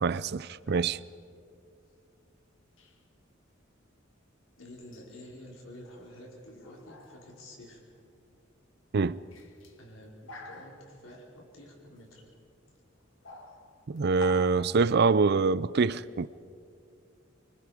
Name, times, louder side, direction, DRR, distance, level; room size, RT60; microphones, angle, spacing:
voice 1, 0.0-1.0 8.9-9.2 13.9-16.3, right 4 dB, 55° right, 0.5 m, -25 dB
sound 1, 0.6-1.0 2.8-3.0 4.9-5.3 5.8-6.3 6.6-8.4 9.1-11.2 12.0-12.1 13.0-14.4, left 2 dB, 70° left, 1.9 m, -48 dB
voice 2, 4.6-7.8 9.7-12.3, left 1 dB, 85° left, 4.7 m, -49 dB
26.0 x 24.0 x 5.1 m
head